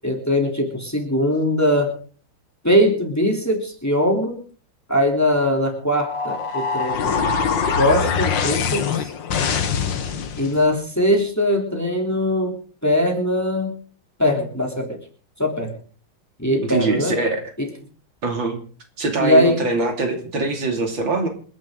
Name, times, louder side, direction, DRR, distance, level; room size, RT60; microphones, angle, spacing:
voice 1, 0.0-1.9 2.6-4.4 4.9-7.4 7.7-9.1 10.4-12.6 12.8-13.7 14.2-15.0 15.4-15.8 16.4-17.1 17.6-17.7 19.2-19.6, left 1 dB, 10° left, 2 dB, 3.3 m, -21 dB
sound 1, 6.0-10.6, left 6 dB, 65° left, 2.0 m, -23 dB
voice 2, 16.6-17.4 18.2-18.6 19.0-21.3, right 3 dB, 70° right, 3 dB, 3.6 m, -23 dB
27.5 x 11.0 x 3.9 m, 0.43 s
omnidirectional pair, 2.2 m